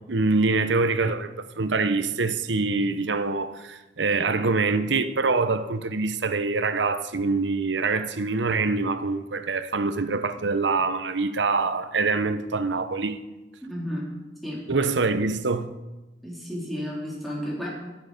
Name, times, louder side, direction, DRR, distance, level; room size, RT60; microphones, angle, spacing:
voice 1, 0.1-13.2 14.7-15.7, right 3 dB, 90° right, 0.9 m, -25 dB
voice 2, 13.7-14.0 14.4-14.6 16.2-17.7, equal, ahead, 4.0 m, -32 dB
13.0 x 12.0 x 5.2 m
head